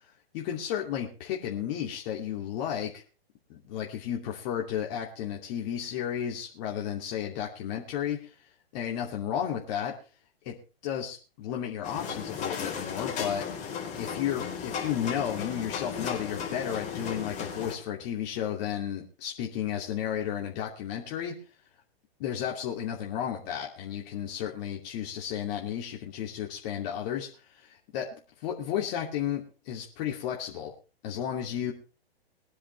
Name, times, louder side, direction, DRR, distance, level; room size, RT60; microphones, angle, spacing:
voice 1, 0.3-3.0 3.5-8.3 8.7-9.9 10.4-10.5 10.8-13.4 14.0-21.3 22.2-27.3 27.5-28.1 28.4-30.7 31.0-31.7, left 9 dB, 40° left, -1 dB, 2.6 m, -33 dB
sound 1, 11.8-17.7, left 6 dB, 25° left, 4.2 m, -35 dB
21.5 x 10.0 x 3.3 m, 0.33 s
hypercardioid pair, 130°, 31 cm